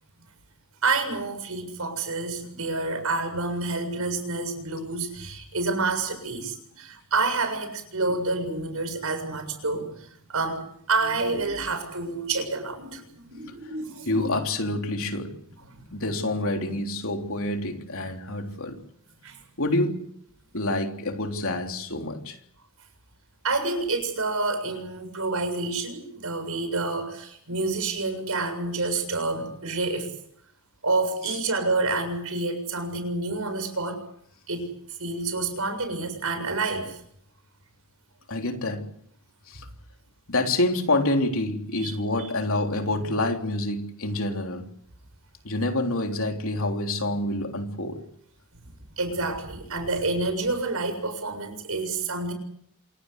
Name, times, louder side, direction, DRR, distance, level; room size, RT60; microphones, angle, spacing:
voice 1, 0.8-14.4 15.6-15.9 19.2-19.4 23.4-30.1 30.8-34.0 34.5-34.7 35.0-37.0 41.8-42.3 49.0-52.3, right 3 dB, 70° right, 7.4 m, -28 dB
voice 2, 14.1-15.4 15.9-18.8 19.6-20.1 20.5-22.4 38.3-38.9 39.5-39.7 40.3-44.7 45.4-48.0, left 2 dB, 65° left, 3.6 m, -27 dB
27.5 x 18.0 x 8.3 m
head